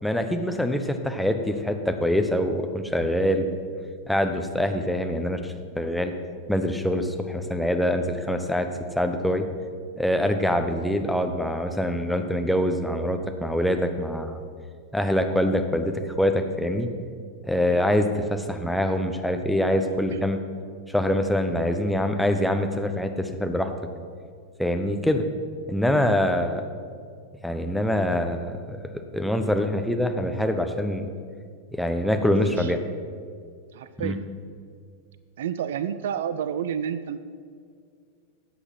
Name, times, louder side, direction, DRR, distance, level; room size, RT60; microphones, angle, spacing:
voice 1, 0.0-3.6 4.1-6.1 6.5-8.7 9.0-9.4 10.0-14.4 14.9-16.9 17.5-20.4 20.9-23.7 24.6-25.2 25.7-26.6 27.4-28.8 29.1-31.1 31.8-32.8 34.0-34.2, left 1 dB, ahead, 5 dB, 1.0 m, -24 dB
voice 2, 32.4-32.7 33.7-34.3 35.4-37.2, right 8 dB, 60° right, 13 dB, 0.4 m, -30 dB
14.0 x 8.5 x 6.0 m, 2.1 s
figure-of-eight pair, 90°, 0 cm